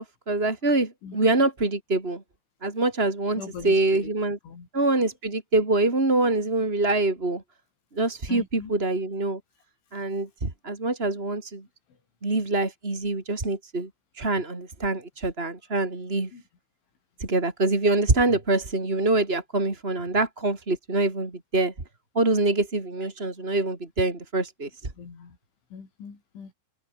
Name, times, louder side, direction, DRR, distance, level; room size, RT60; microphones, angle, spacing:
voice 1, 0.0-2.2 2.6-4.4 4.7-7.4 7.9-9.4 9.9-11.6 12.2-13.9 14.1-16.3 17.2-21.7 22.1-24.9, right 2 dB, 15° right, 2.6 m, -25 dB
voice 2, 3.4-4.1 4.5-4.7 8.3-8.7 16.3-16.4 25.0-25.4 25.7-26.5, left 6 dB, 80° left, 8.3 m, -41 dB
omnidirectional pair, 5.3 m